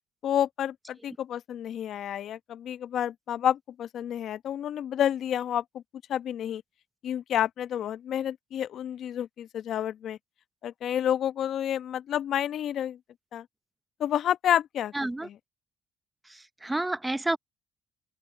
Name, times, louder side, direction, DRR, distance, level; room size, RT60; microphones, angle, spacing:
voice 1, 0.2-5.8 6.1-6.6 7.0-10.2 10.6-13.0 13.3-13.4 14.0-14.9 15.2-15.3, left 10 dB, 65° left, 1.0 m, -29 dB
voice 2, 14.9-15.3 16.3-17.4, right 2 dB, 15° right, 0.9 m, -30 dB
open air
supercardioid pair, 65°, 0 cm